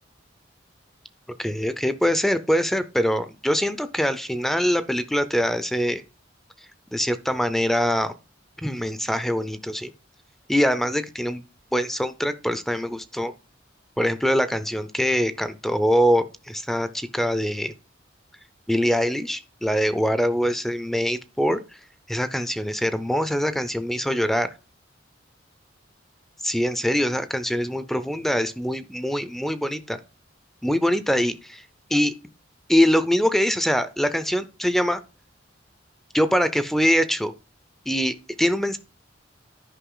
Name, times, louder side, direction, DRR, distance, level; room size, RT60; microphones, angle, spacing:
voice 1, 1.4-6.0 6.9-8.1 8.6-9.9 10.5-11.4 11.7-13.3 14.0-17.7 18.7-21.6 22.1-24.5 26.4-30.0 30.6-31.6 31.9-32.1 32.7-35.0 36.1-37.3 37.9-38.8, equal, ahead, 0.5 m, -23 dB
10.0 x 5.3 x 3.8 m
head